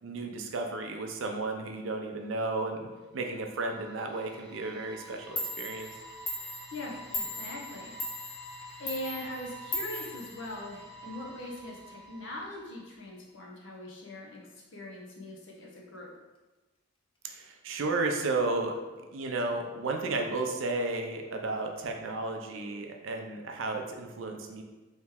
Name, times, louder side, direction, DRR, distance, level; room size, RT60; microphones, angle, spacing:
voice 1, 0.0-2.9 3.1-5.9 17.2-18.8 19.1-24.6, right 3 dB, 65° right, 3 dB, 0.5 m, -33 dB
sound 1, 3.0-13.0, equal, 20° right, 1.2 m, -49 dB
Clock, 5.0-5.1 5.4-11.0, left 2 dB, 25° left, 0.4 m, -39 dB
voice 2, 6.7-7.9 8.8-14.4 14.7-16.1, left 1 dB, 60° left, -2 dB, 0.8 m, -41 dB
3.1 x 3.0 x 3.5 m, 1.2 s
head